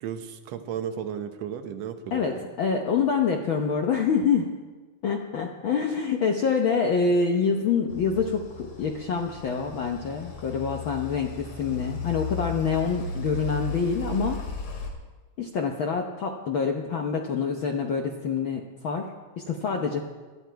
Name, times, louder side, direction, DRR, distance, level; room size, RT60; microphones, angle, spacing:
voice 1, 0.0-2.5, right 8 dB, 65° right, 7 dB, 2.0 m, -34 dB
voice 2, 2.1-4.5 5.0-14.4 15.4-20.0, left 5 dB, 75° left, 2 dB, 1.1 m, -26 dB
sound 1, 7.9-14.9, left 4 dB, 55° left, 2.8 m, -36 dB
18.5 x 12.5 x 4.6 m, 1.3 s
omnidirectional pair, 3.6 m